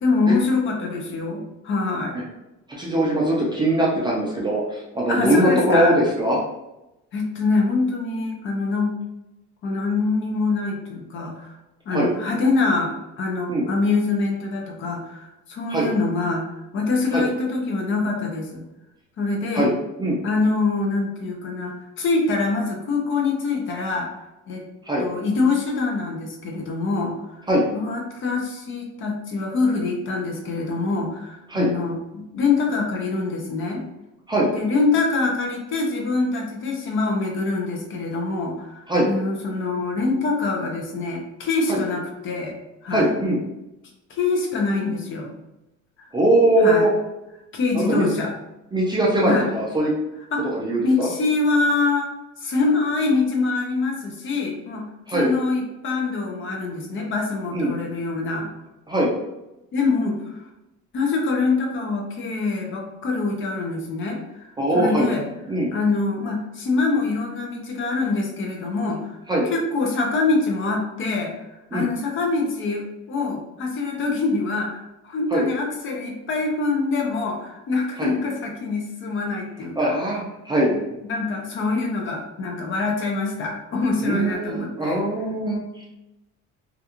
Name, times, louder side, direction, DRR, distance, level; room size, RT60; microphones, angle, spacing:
voice 1, 0.0-2.1 5.1-6.0 7.1-8.9 9.6-11.5 11.9-16.5 16.7-18.6 19.2-19.7 20.2-24.2 24.5-24.6 25.0-27.4 27.7-33.8 34.5-42.6 42.8-43.1 44.1-45.3 46.0-46.1 46.6-47.0 47.5-48.3 49.3-49.6 50.3-50.5 50.8-52.1 52.4-58.5 59.7-60.1 60.9-64.5 64.7-65.2 65.7-69.1 69.5-71.3 71.7-79.9 81.0-85.0, left 3 dB, 40° left, 1 dB, 0.5 m, -24 dB
voice 2, 2.8-6.4 11.9-12.1 13.5-13.7 15.7-15.9 17.1-17.3 19.5-19.7 20.0-20.2 24.9-25.1 27.5-27.7 31.5-31.7 34.3-34.5 38.9-39.1 41.7-41.8 42.9-43.4 46.1-46.9 47.7-48.1 48.7-49.9 50.4-51.1 55.1-55.3 57.5-57.7 58.9-59.1 64.6-65.1 65.5-65.7 69.3-69.5 71.7-71.8 75.3-75.5 78.0-78.1 79.8-80.8 84.0-86.0, right 1 dB, 15° right, -4 dB, 0.3 m, -21 dB
2.4 x 2.2 x 2.8 m, 0.95 s
cardioid pair, 150°, 30 cm